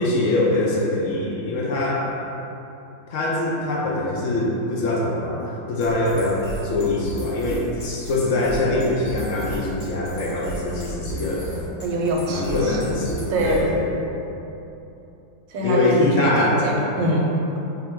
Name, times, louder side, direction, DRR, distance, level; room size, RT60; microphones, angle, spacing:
voice 1, 0.0-2.1 3.1-11.5 12.3-13.9 15.6-16.6, left 2 dB, 70° left, -4 dB, 0.7 m, -23 dB
sound 1, 5.8-13.8, left 1 dB, 55° left, 1.2 m, -34 dB
voice 2, 11.8-12.9 13.3-13.8 15.5-17.4, right 1 dB, 90° right, -1 dB, 1.4 m, -24 dB
4.4 x 2.7 x 4.5 m, 3.0 s
omnidirectional pair, 1.9 m